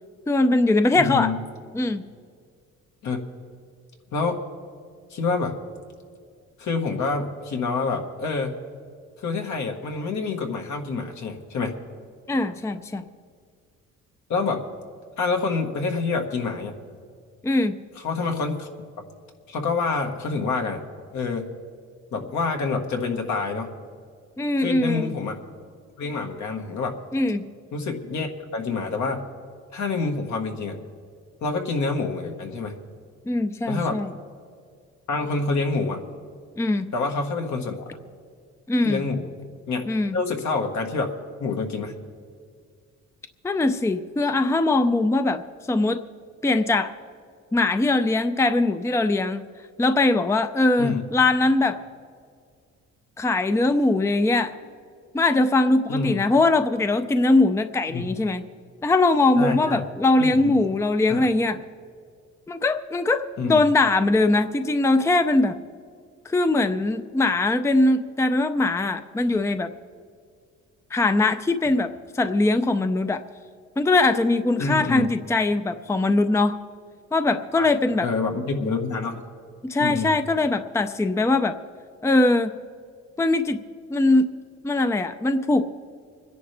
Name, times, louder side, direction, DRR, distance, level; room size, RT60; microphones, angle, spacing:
voice 1, 0.3-1.3 1.7-2.0 12.3-13.0 17.4-17.8 24.4-25.1 27.1-27.5 33.3-34.1 36.6-36.9 38.7-39.0 39.9-40.2 43.4-45.4 45.7-46.0 46.4-46.9 47.5-49.5 49.8-51.8 53.2-54.5 55.1-58.4 58.8-61.6 62.5-65.6 66.3-69.7 70.9-73.2 73.8-76.6 77.1-78.1 79.6-81.6 82.0-82.6 83.2-83.6 83.9-84.3 84.6-85.6, left 2 dB, 10° left, 9 dB, 0.5 m, -21 dB
voice 2, 0.9-1.4 3.0-3.2 4.1-4.4 5.1-5.6 6.6-8.5 9.2-11.7 14.3-14.6 15.2-16.8 18.0-18.7 19.5-20.8 21.1-21.5 22.1-23.7 24.6-25.4 26.0-27.0 27.7-29.3 29.7-30.8 31.4-32.8 33.7-34.0 35.1-36.0 36.9-37.9 38.8-39.3 39.7-39.9 40.1-41.1 41.4-42.0 50.8-51.0 55.9-56.2 57.9-58.0 59.4-59.9 60.2-60.6 61.1-61.3 63.4-63.6 74.6-75.1 77.5-77.7 78.0-79.2 79.8-80.1, left 4 dB, 70° left, 3 dB, 1.7 m, -27 dB
26.0 x 10.5 x 3.4 m, 2.1 s
cardioid pair, 90°, 30 cm